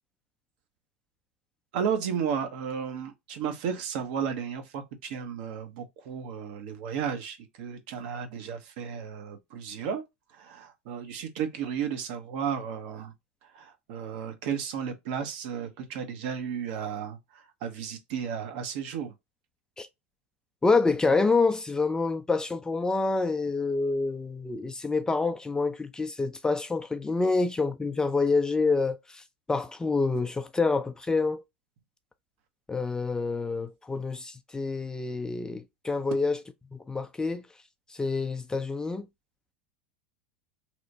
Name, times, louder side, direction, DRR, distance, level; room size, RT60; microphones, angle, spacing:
voice 1, 1.7-10.0 10.3-13.1 13.5-19.1, right 7 dB, 60° right, 0.7 m, -33 dB
voice 2, 20.6-31.4 32.7-36.4 36.7-37.4 37.9-39.1, left 3 dB, 10° left, 0.3 m, -27 dB
2.9 x 2.1 x 2.6 m
hypercardioid pair, 90°, 6 cm